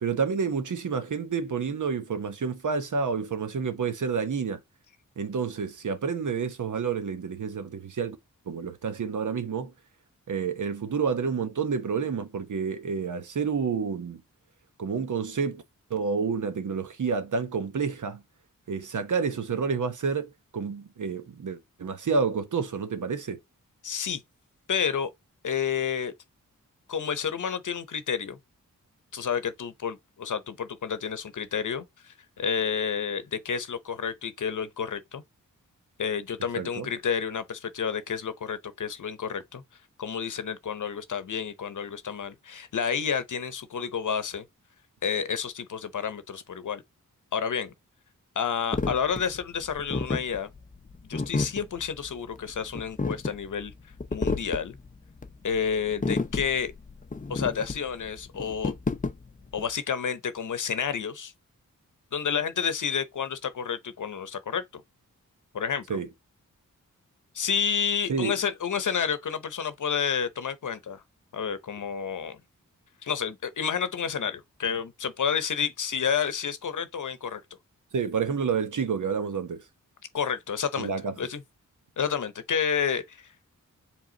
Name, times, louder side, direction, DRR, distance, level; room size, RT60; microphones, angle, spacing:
voice 1, 0.0-4.6 5.2-8.2 8.5-9.7 10.3-14.2 14.8-15.6 15.9-18.2 18.7-23.4 36.6-36.9 65.9-66.1 68.1-68.4 77.9-79.6 80.8-81.1, right 5 dB, 65° right, 0.9 m, -29 dB
voice 2, 23.8-24.2 24.7-25.1 25.4-26.1 26.9-28.4 29.1-35.2 36.0-39.6 40.0-44.4 45.0-46.8 47.3-47.7 48.4-50.5 51.1-53.7 54.1-54.8 55.4-56.7 57.3-58.7 59.5-61.3 62.1-64.8 65.5-66.0 67.3-71.0 71.3-72.4 73.0-77.4 80.1-81.4 82.0-83.3, left 7 dB, 65° left, 0.8 m, -30 dB
sound 1, 48.7-59.7, left 3 dB, 25° left, 0.6 m, -31 dB
4.9 x 3.5 x 2.8 m
cardioid pair, 55°, 33 cm